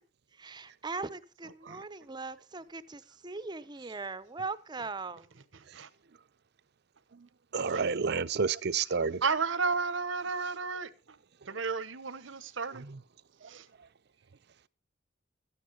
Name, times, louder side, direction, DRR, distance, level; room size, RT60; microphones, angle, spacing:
voice 1, 0.4-5.3, right 3 dB, 25° right, 0.7 m, -40 dB
voice 2, 5.5-5.9 7.7-7.8 9.2-11.2 11.5-12.8 13.5-13.7, right 4 dB, 85° right, 1.0 m, -33 dB
voice 3, 7.5-9.2 12.9-13.0 13.4-13.5, right 5 dB, 60° right, 0.6 m, -30 dB
13.0 x 9.5 x 5.3 m
head